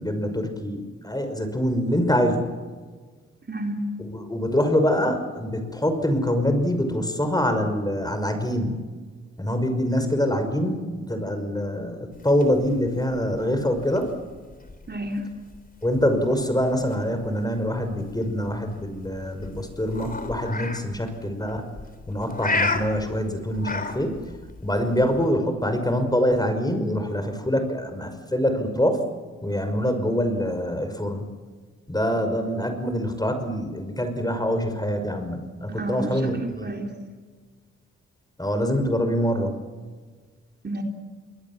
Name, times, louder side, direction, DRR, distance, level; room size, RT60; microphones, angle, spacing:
voice 1, 0.0-2.5 4.1-8.8 9.4-14.1 15.8-21.7 22.1-24.1 24.6-29.0 29.4-31.2 31.9-36.7 38.4-39.5, equal, 10° left, 7 dB, 5.7 m, -25 dB
voice 2, 3.5-3.9 14.9-15.3 35.8-36.9 40.6-40.8, right 1 dB, 35° right, 2 dB, 4.0 m, -30 dB
sound 1, 12.1-25.3, left 3 dB, 30° left, 3.9 m, -34 dB
28.0 x 21.5 x 7.4 m, 1.5 s
supercardioid pair, 50°, 31 cm